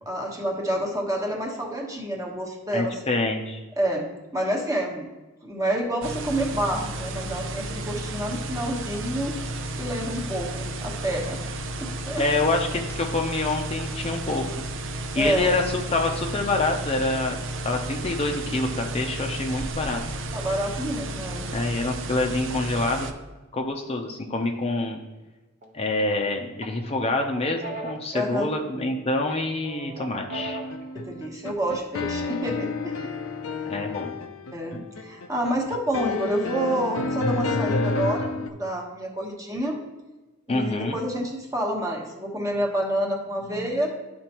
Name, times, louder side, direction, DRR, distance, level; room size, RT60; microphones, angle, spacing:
voice 1, 0.0-3.0 3.8-4.1 4.3-5.1 5.4-9.4 9.8-11.4 11.8-12.2 15.1-15.5 20.3-21.5 28.1-28.5 30.9-33.1 34.5-39.8 40.5-43.9, right 1 dB, 15° right, 0 dB, 1.2 m, -28 dB
voice 2, 2.7-3.6 12.1-14.4 15.1-20.0 21.5-23.1 23.5-25.0 25.7-30.6 33.6-34.1 40.5-41.0, left 2 dB, 30° left, 2 dB, 0.6 m, -26 dB
sound 1, 6.0-23.1, right 2 dB, 65° right, 0.6 m, -33 dB
sound 2, 25.6-26.2 26.6-28.9 29.3-30.9, right 3 dB, 40° right, 1.0 m, -39 dB
sound 3, 30.3-38.5, left 3 dB, 90° left, 0.6 m, -29 dB
12.0 x 4.3 x 3.0 m, 1.1 s
head